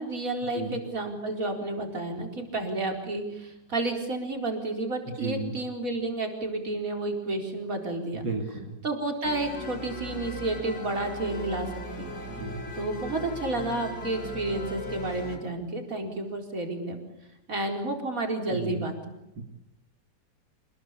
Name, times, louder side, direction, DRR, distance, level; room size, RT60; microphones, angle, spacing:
voice 1, 0.0-8.3 8.8-12.2 12.7-17.0 17.5-19.2, right 2 dB, 50° right, 3 dB, 4.9 m, -31 dB
voice 2, 5.2-5.5 8.2-8.7 12.3-12.6 18.5-18.8 19.4-19.5, right 4 dB, 80° right, 3 dB, 3.3 m, -33 dB
sound 1, 9.2-15.4, left 1 dB, 80° left, 4.8 m, -38 dB
27.5 x 21.0 x 8.5 m, 0.88 s
omnidirectional pair, 1.9 m